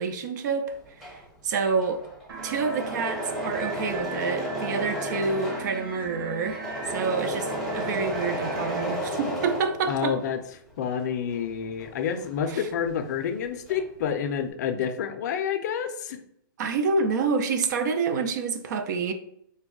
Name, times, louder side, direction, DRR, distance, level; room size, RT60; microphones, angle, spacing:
voice 1, 0.0-2.0 2.4-6.6 6.9-10.2 12.5-12.7 16.6-19.1, right 4 dB, 55° right, 0.4 m, -28 dB
Engine / Mechanisms, 0.7-10.4 10.7-13.1 13.3-14.0, equal, ahead, 0.8 m, -33 dB
sound 1, 2.3-9.0, right 4 dB, 75° right, 0.9 m, -39 dB
voice 2, 9.9-10.4 10.8-16.2, left 7 dB, 50° left, 0.4 m, -28 dB
3.4 x 2.2 x 3.7 m
hypercardioid pair, 145°, 12 cm